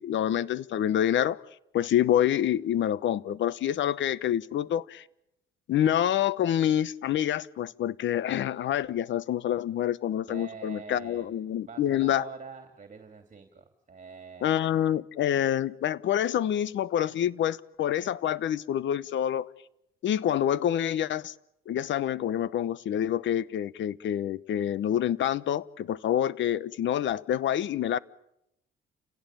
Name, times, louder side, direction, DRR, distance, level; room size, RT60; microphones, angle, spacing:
voice 1, 0.0-1.4 1.7-5.0 5.7-12.2 14.4-19.5 20.0-21.3 21.7-28.0, left 10 dB, 70° left, 1.0 m, -27 dB
voice 2, 10.3-14.9, right 5 dB, 40° right, 3.0 m, -45 dB
29.5 x 17.0 x 9.2 m
cardioid pair, 90°, 20 cm